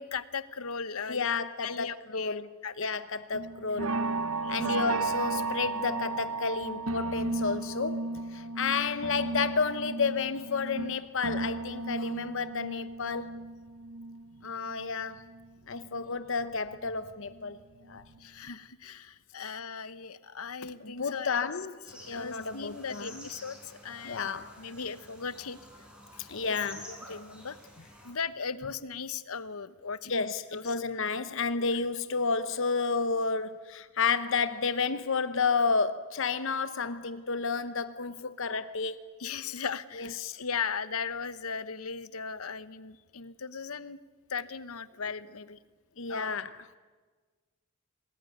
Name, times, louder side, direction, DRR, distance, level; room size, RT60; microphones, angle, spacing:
voice 1, 0.0-2.9 4.4-4.6 18.2-21.5 21.9-24.3 24.6-25.6 26.1-27.6 28.0-30.7 31.7-31.8 39.2-44.0 44.3-45.6 46.1-46.4, left 5 dB, 85° left, 1.1 m, -38 dB
voice 2, 1.1-2.5 2.8-4.0 4.5-13.3 14.4-15.2 15.7-17.6 17.9-18.0 20.8-21.7 22.1-23.3 24.0-24.6 26.3-26.8 30.1-39.0 40.0-40.4 46.0-46.5, left 4 dB, 60° left, 0.9 m, -31 dB
sound 1, 3.3-15.5 15.8-17.5 17.8-18.2 18.5-18.6, right 3 dB, 85° right, 1.1 m, -34 dB
sound 2, 21.9-28.1, equal, 5° right, 5.0 m, -50 dB
27.0 x 20.0 x 9.4 m
head